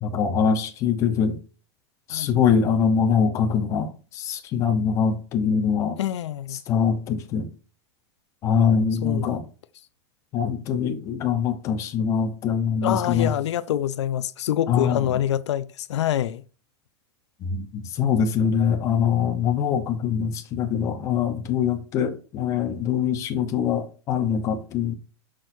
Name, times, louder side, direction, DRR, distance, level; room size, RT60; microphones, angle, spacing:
voice 1, 0.0-1.4 2.1-6.0 6.7-7.5 8.4-9.4 10.3-13.3 14.7-15.2 17.4-24.9, left 7 dB, 20° left, 0.8 m, -23 dB
voice 2, 6.0-6.6 9.0-9.4 12.8-16.4, left 11 dB, 80° left, 0.5 m, -26 dB
6.4 x 6.1 x 2.7 m
supercardioid pair, 170°, 15 cm